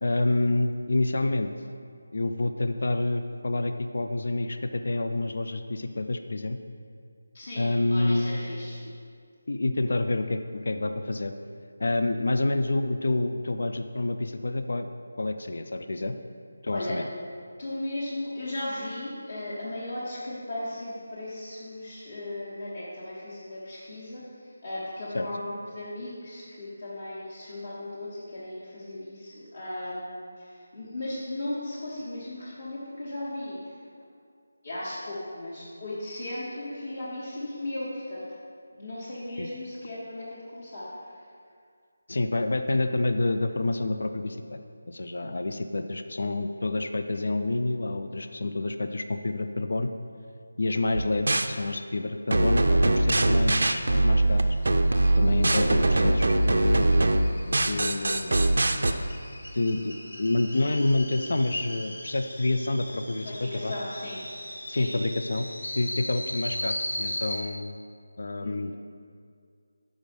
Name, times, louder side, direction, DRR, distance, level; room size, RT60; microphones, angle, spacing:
voice 1, 0.0-1.5 2.1-6.6 7.6-8.4 9.5-11.3 11.8-14.9 15.2-16.1 16.6-17.1 25.1-25.3 39.4-39.5 42.1-44.6 44.9-49.9 50.6-54.6 55.2-57.2 57.5-58.6 59.5-63.7 64.7-65.5 65.8-67.8 68.2-68.7, left 2 dB, 65° left, 8 dB, 0.4 m, -28 dB
voice 2, 7.3-8.8 16.7-17.0 17.6-33.8 34.6-38.2 38.7-40.9 55.5-55.8 60.5-60.6 63.2-64.2 64.7-64.9 68.4-68.6, left 1 dB, 45° left, -10 dB, 1.3 m, -36 dB
sound 1, 50.9-51.5 52.3-58.9, right 2 dB, 70° right, 0.4 m, -22 dB
sound 2, 53.4-67.4, left 1 dB, 85° left, 1.4 m, -39 dB
6.4 x 5.0 x 5.3 m, 2.2 s
figure-of-eight pair, 175°, 0 cm